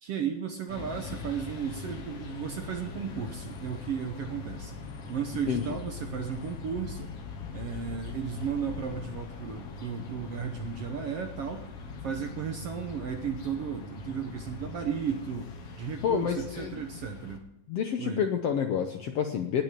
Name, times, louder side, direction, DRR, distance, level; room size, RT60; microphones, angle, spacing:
voice 1, 0.0-4.8 5.1-7.1 7.5-11.6 12.0-15.5 15.8-17.4 18.0-18.3, right 7 dB, 65° right, 5 dB, 1.6 m, -34 dB
sound 1, 0.7-17.4, left 5 dB, 55° left, 2.2 m, -42 dB
voice 2, 16.0-16.8 17.7-19.6, left 7 dB, 70° left, 5 dB, 1.5 m, -29 dB
19.0 x 6.4 x 6.8 m, 0.85 s
omnidirectional pair, 3.8 m